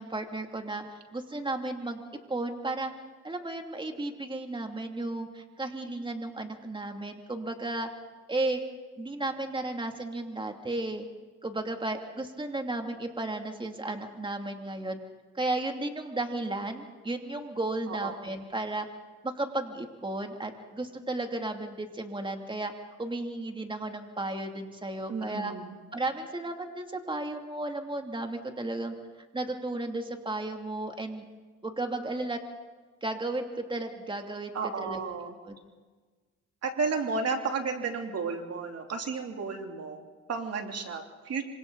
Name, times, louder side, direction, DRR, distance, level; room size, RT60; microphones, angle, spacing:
voice 1, 0.0-2.0 2.3-2.9 3.2-7.9 8.3-8.6 9.0-11.1 11.4-15.0 15.3-18.9 19.2-22.7 23.0-25.5 25.9-28.9 29.3-31.2 31.6-32.4 33.0-35.0 35.4-35.6, right 2 dB, 15° right, 4 dB, 2.8 m, -34 dB
voice 2, 17.9-18.2 25.1-25.8 34.5-35.3 36.6-41.4, right 4 dB, 55° right, 3 dB, 3.2 m, -33 dB
26.5 x 25.5 x 4.1 m, 1.4 s
cardioid pair, 90°, 30 cm